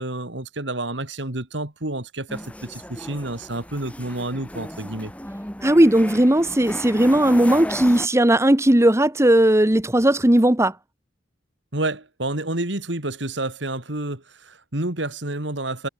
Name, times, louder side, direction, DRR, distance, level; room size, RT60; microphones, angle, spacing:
voice 1, 0.0-5.1 11.7-15.9, right 2 dB, 70° right, 3.1 m, -29 dB
sound 1, 2.3-8.1, left 1 dB, 5° left, 5.8 m, -35 dB
voice 2, 5.6-10.7, right 1 dB, 15° right, 1.2 m, -17 dB
head